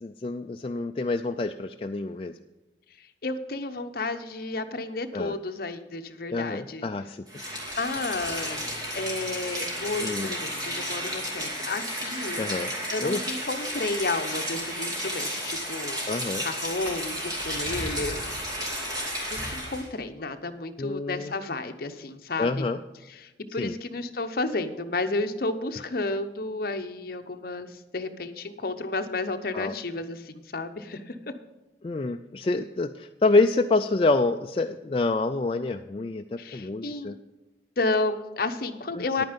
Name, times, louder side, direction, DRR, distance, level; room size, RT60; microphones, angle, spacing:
voice 1, 0.0-2.3 5.1-5.3 6.3-7.2 10.0-10.3 12.4-12.7 13.0-13.2 16.1-16.4 20.8-21.3 22.4-22.8 23.6-23.8 29.5-29.7 31.8-37.1 39.0-39.2, left 3 dB, 30° left, 5 dB, 0.3 m, -27 dB
voice 2, 3.0-6.9 7.8-12.4 12.9-16.0 16.4-17.2 17.4-18.3 18.7-18.9 19.3-22.7 23.1-31.3 36.4-37.1 37.8-39.2, left 3 dB, 55° left, 8 dB, 0.8 m, -32 dB
Rain, 7.3-19.9, equal, 20° right, 2.4 m, -32 dB
10.5 x 9.2 x 5.2 m, 1.1 s
head